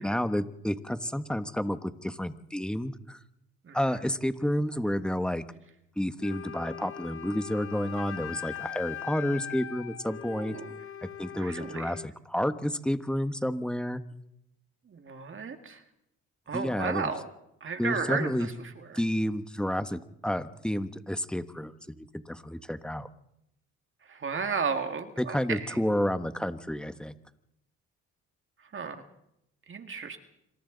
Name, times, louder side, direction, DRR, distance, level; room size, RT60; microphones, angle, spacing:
voice 1, 0.0-3.2 3.7-5.4 6.0-10.6 11.0-14.0 16.5-17.1 17.8-18.5 18.9-23.1 25.2-27.1, equal, 5° left, 10 dB, 1.3 m, -30 dB
Wind instrument woodwind instrument, 6.2-12.1, left 10 dB, 45° left, 1.5 m, -40 dB
voice 2, 10.4-10.7 11.4-11.9 14.9-15.8 16.5-17.3 17.6-18.5 18.9-19.0 24.1-25.8 28.7-29.0 29.7-30.2, right 5 dB, 40° right, 6 dB, 2.2 m, -33 dB
27.0 x 25.0 x 4.0 m, 0.82 s
cardioid pair, 90°, 30 cm